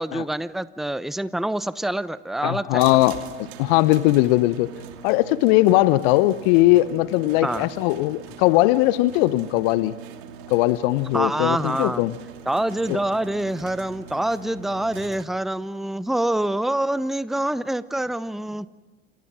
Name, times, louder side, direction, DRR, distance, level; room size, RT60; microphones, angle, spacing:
voice 1, 0.0-2.9 7.4-7.7 11.1-12.0 12.5-18.7, right 1 dB, ahead, 16 dB, 0.9 m, -26 dB
voice 2, 2.4-3.2 3.6-4.7 5.0-9.9 10.5-12.2 12.9-13.0, left 17 dB, 65° left, 17 dB, 0.8 m, -19 dB
sound 1, 2.8-15.2, right 8 dB, 65° right, 2.7 m, -42 dB
29.0 x 27.0 x 6.2 m, 1.2 s
hypercardioid pair, 65°, 29 cm